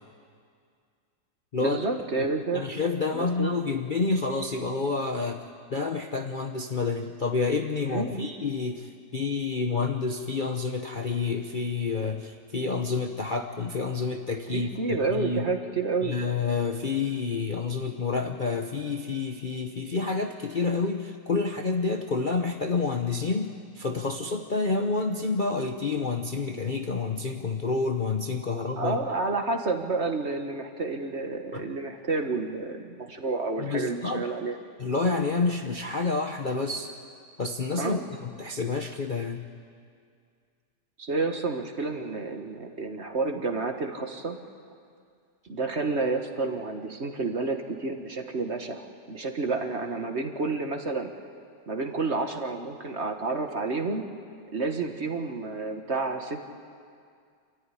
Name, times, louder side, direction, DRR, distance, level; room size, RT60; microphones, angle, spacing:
voice 1, 1.6-2.6 3.1-3.6 7.9-8.3 14.5-16.2 28.8-34.6 37.8-38.0 41.0-44.4 45.5-51.1 51.7-54.0 54.5-56.4, right 3 dB, 40° right, 4 dB, 1.6 m, -30 dB
voice 2, 2.5-5.4 5.7-15.5 16.0-29.0 31.5-31.6 33.6-34.3 34.8-36.9 37.4-39.5, left 4 dB, 40° left, 3 dB, 0.8 m, -29 dB
27.0 x 14.0 x 9.9 m, 2.2 s
omnidirectional pair, 1.9 m